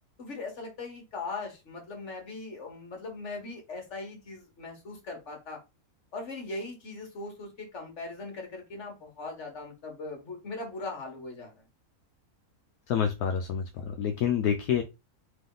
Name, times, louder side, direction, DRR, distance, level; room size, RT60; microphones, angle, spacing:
voice 1, 0.2-5.6 6.1-11.5, left 3 dB, 50° left, 2 dB, 1.7 m, -39 dB
voice 2, 12.9-14.8, left 8 dB, 75° left, 5 dB, 1.1 m, -28 dB
3.6 x 3.1 x 3.8 m, 0.26 s
omnidirectional pair, 1.6 m